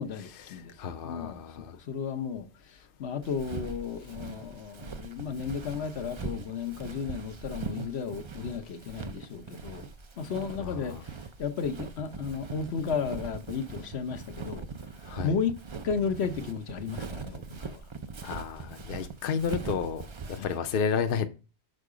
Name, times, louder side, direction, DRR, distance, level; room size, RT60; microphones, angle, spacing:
voice 1, 0.0-9.9 10.2-14.9 15.2-15.6 15.8-17.9 20.3-20.6, left 6 dB, 75° left, 1.1 m, -34 dB
voice 2, 0.8-1.7 10.6-11.0 15.1-15.3 18.2-20.0 20.4-21.3, left 6 dB, 60° left, 0.8 m, -31 dB
Walk footsteps, 3.2-20.6, right 5 dB, 40° right, 0.5 m, -41 dB
6.5 x 4.6 x 4.9 m
omnidirectional pair, 1.1 m